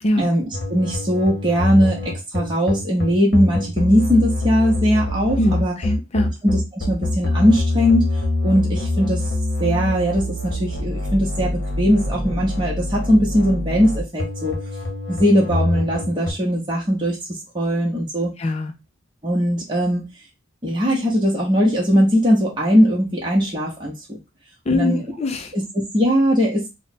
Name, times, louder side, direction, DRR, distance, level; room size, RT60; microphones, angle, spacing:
voice 1, 0.2-5.7 6.4-8.1 8.4-9.2 9.6-11.5 11.8-14.6 15.1-17.2 17.5-18.3 19.2-20.1 20.6-24.2 24.7-25.1 25.5-26.7, equal, 20° right, -3 dB, 0.8 m, -19 dB
sound 1, 0.5-16.3, left 2 dB, 50° left, 1.0 m, -24 dB
voice 2, 5.4-6.3 18.4-18.7 24.7-25.5, left 1 dB, 30° left, 4 dB, 0.4 m, -22 dB
3.2 x 2.2 x 4.0 m, 0.24 s
head